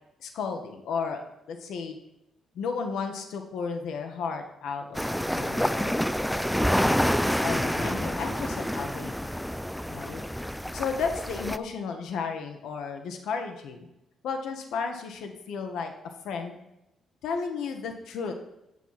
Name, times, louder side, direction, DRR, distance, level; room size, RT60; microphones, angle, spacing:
voice 1, 0.2-1.2 1.5-2.0 2.5-5.0 5.4-6.1 7.4-9.3 9.9-10.2 10.7-13.9 14.2-15.9 16.2-16.6 17.2-18.4, left 5 dB, 80° left, 5 dB, 1.2 m, -33 dB
sound 1, 4.9-11.6, equal, 5° left, 0.4 m, -28 dB
9.1 x 7.2 x 5.9 m, 0.87 s
cardioid pair, 90°, 0 cm